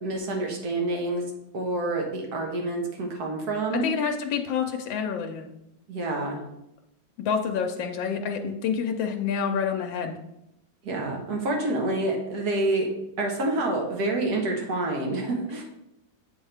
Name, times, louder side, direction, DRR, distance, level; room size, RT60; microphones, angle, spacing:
voice 1, 0.0-1.2 1.5-3.9 5.9-6.4 10.8-12.9 13.2-15.6, right 2 dB, 60° right, 0 dB, 1.6 m, -27 dB
voice 2, 3.7-5.5 7.2-10.1, left 6 dB, 85° left, 3 dB, 1.3 m, -28 dB
8.6 x 3.6 x 3.3 m, 0.85 s
omnidirectional pair, 2.0 m